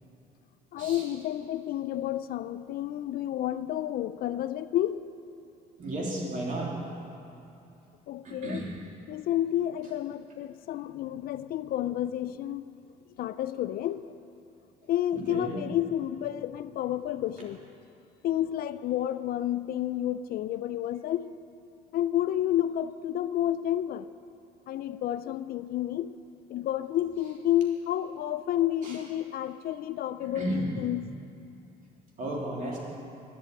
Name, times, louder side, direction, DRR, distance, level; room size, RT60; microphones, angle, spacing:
voice 1, 0.7-5.0 8.1-8.6 9.1-12.6 13.2-14.1 14.9-17.6 18.2-21.3 21.9-24.1 24.7-26.1 26.5-31.1, left 12 dB, 60° left, 13 dB, 0.4 m, -30 dB
voice 2, 5.8-6.7 8.2-8.7 15.1-15.6 28.8-29.0 30.2-30.8 32.2-32.8, right 1 dB, 50° right, -3 dB, 3.2 m, -33 dB
10.5 x 8.5 x 9.0 m, 2.8 s
cardioid pair, 110°, 17 cm